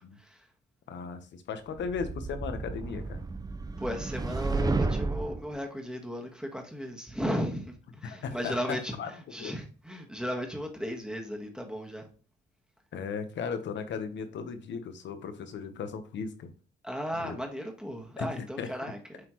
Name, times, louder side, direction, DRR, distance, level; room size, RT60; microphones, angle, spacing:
voice 1, 0.9-3.2 8.0-8.5 9.0-9.1 9.4-9.5 12.9-16.5 17.2-17.4 18.2-18.7, left 6 dB, 65° left, 1.2 m, -36 dB
sound 1, 1.8-5.5, right 3 dB, 20° right, 0.6 m, -32 dB
voice 2, 3.8-12.1 16.8-19.0, equal, 5° right, 1.6 m, -35 dB
7.5 x 4.2 x 3.1 m
cardioid pair, 90°, 20 cm